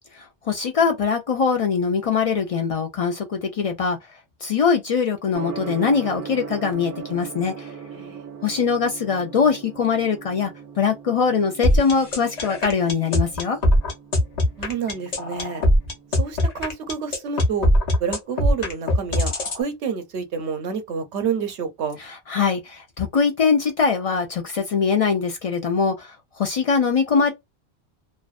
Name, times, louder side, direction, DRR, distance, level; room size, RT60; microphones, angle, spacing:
voice 1, 0.5-4.0 4.4-7.7 8.4-10.5 10.8-13.6 22.0-27.3, left 5 dB, 70° left, 0.3 m, -22 dB
Gong, 5.3-16.2, right 6 dB, 60° right, 0.6 m, -39 dB
sound 1, 11.6-19.6, left 1 dB, 45° left, 0.7 m, -20 dB
voice 2, 14.6-15.6 16.2-17.7 18.0-22.0, right 6 dB, 80° right, 0.9 m, -28 dB
2.5 x 2.1 x 2.3 m
omnidirectional pair, 1.1 m